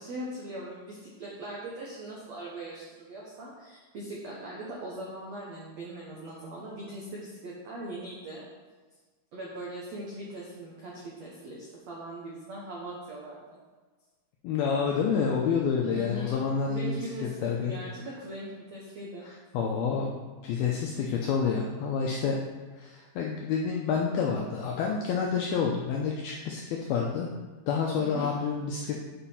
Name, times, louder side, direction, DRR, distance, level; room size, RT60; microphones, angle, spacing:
voice 1, 0.0-8.5 9.3-13.6 15.9-16.4 16.7-19.2 28.0-28.3, right 1 dB, 90° right, -5 dB, 1.5 m, -40 dB
voice 2, 14.4-17.0 17.4-17.7 19.2-20.1 20.4-22.4 22.8-27.3 27.7-29.1, left 6 dB, 85° left, -1 dB, 2.1 m, -28 dB
8.8 x 5.0 x 5.7 m, 1.3 s
omnidirectional pair, 5.3 m